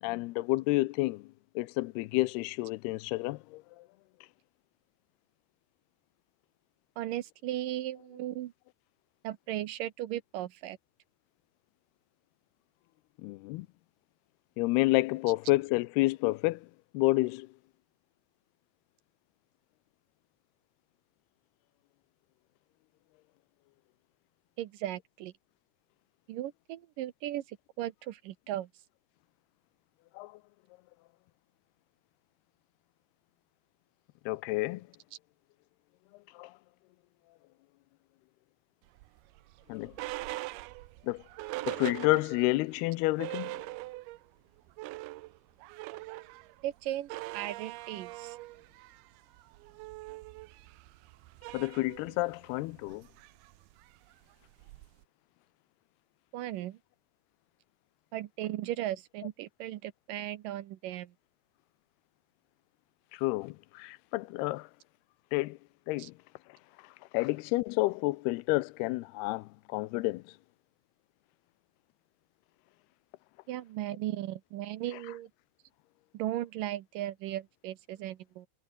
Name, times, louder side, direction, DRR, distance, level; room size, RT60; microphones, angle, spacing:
voice 1, 0.0-1.3 1.6-3.8 13.2-13.7 14.6-16.7 16.9-17.5 30.1-30.4 34.3-34.9 36.3-36.5 39.7-39.9 41.0-41.2 41.7-43.6 51.5-53.1 63.1-64.7 65.3-65.6 65.9-66.1 67.1-70.3, left 21 dB, 90° left, 2.7 m, -30 dB
voice 2, 7.0-8.5 9.2-10.8 24.6-25.3 26.3-28.7 46.6-48.4 56.3-56.8 58.1-61.1 66.0-66.1 73.5-75.3 76.1-78.5, right 13 dB, 70° right, 2.3 m, -37 dB
sound 1, 39.0-42.6 42.9-43.0 43.2-44.3 44.6-55.0, right 19 dB, 90° right, 2.6 m, -42 dB
omnidirectional pair, 4.5 m